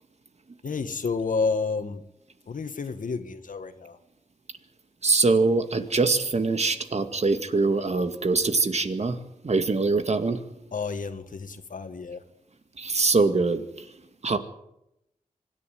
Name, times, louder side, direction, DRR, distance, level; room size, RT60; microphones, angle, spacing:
voice 1, 0.6-2.0 2.5-4.0 10.7-12.2, left 4 dB, 80° left, 9 dB, 2.0 m, -30 dB
voice 2, 5.0-9.2 9.4-10.4 12.8-13.7 14.2-14.4, right 3 dB, 55° right, 8 dB, 2.1 m, -23 dB
25.0 x 11.0 x 9.5 m, 0.81 s
wide cardioid pair, 85°, 13 cm